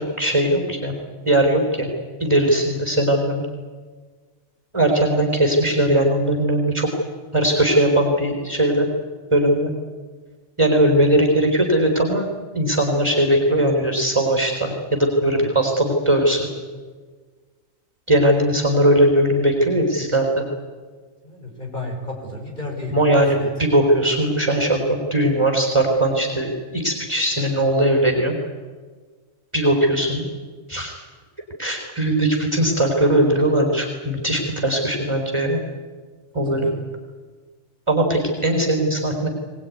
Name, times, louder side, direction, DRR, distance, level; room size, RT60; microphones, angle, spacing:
voice 1, 0.2-0.9 1.2-1.9 2.2-3.4 4.7-6.9 7.3-8.9 9.3-9.7 10.6-16.5 18.1-20.4 22.9-28.4 29.5-30.3 30.7-30.9 31.6-35.6 36.3-36.7 37.9-39.3, right 1 dB, 20° right, 2 dB, 4.1 m, -19 dB
voice 2, 21.2-23.0 23.4-23.5 36.5-36.7, left 1 dB, 35° left, 0 dB, 6.0 m, -32 dB
22.5 x 20.0 x 9.6 m, 1.5 s
omnidirectional pair, 1.4 m